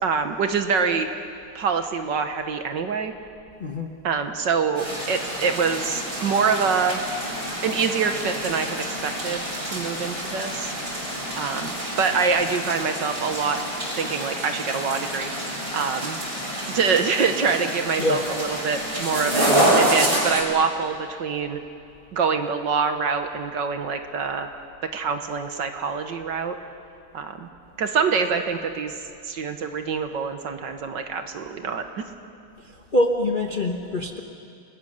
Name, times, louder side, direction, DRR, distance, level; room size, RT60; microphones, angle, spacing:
voice 1, 0.0-1.1 1.5-3.1 4.0-7.0 7.6-10.7 11.4-13.6 14.0-16.2 16.7-21.6 22.1-24.5 24.9-26.6 27.1-27.5 27.8-28.9 29.2-32.0, right 5 dB, 60° right, 7 dB, 1.7 m, -25 dB
voice 2, 3.6-3.9 18.0-18.2 32.6-34.2, left 1 dB, 35° left, 3 dB, 0.9 m, -24 dB
sound 1, 4.7-20.4, right 1 dB, 30° right, 5.8 m, -27 dB
30.0 x 20.5 x 6.5 m, 2.6 s
omnidirectional pair, 2.4 m